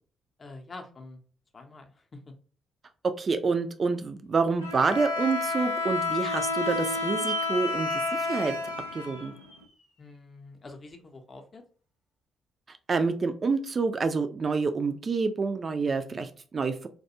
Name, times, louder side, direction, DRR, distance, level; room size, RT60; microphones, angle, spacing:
voice 1, 0.4-1.2 1.5-2.3 10.0-11.6 16.1-16.3, left 3 dB, 35° left, 4 dB, 0.6 m, -46 dB
voice 2, 3.2-7.9 8.3-9.3 12.7-16.9, right 4 dB, 35° right, 9 dB, 0.4 m, -28 dB
Bowed string instrument, 4.6-9.6, left 3 dB, 85° left, 0.3 m, -30 dB
sound 1, 6.3-9.8, right 5 dB, 85° right, 1.0 m, -41 dB
2.3 x 2.2 x 2.7 m, 0.43 s
figure-of-eight pair, 40°, 0 cm